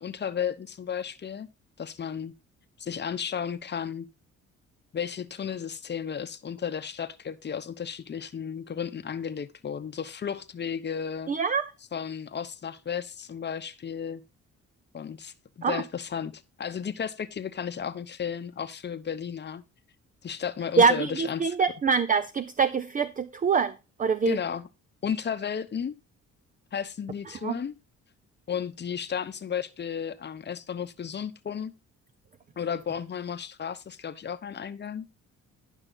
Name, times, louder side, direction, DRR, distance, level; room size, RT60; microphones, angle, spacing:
voice 1, 0.0-1.5 1.8-2.3 2.8-4.1 4.9-11.3 11.9-14.2 14.9-19.6 20.2-21.5 24.3-24.7 25.0-25.9 26.7-27.8 28.5-31.7 32.6-35.1, left 7 dB, 35° left, 0.8 m, -33 dB
voice 2, 11.3-11.6 15.6-15.8 20.8-23.7 24.0-24.4 27.4-27.5, right 5 dB, 25° right, 0.5 m, -24 dB
10.5 x 5.6 x 3.9 m
cardioid pair, 90°, 30 cm